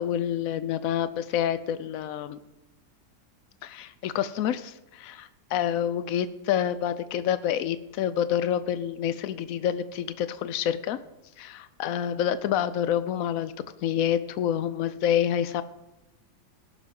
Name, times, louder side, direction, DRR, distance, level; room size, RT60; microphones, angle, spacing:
voice 1, 0.0-2.4 3.6-11.0 11.4-13.5 13.8-15.6, left 10 dB, 80° left, 14 dB, 0.7 m, -28 dB
17.5 x 6.1 x 5.2 m, 0.97 s
omnidirectional pair, 2.0 m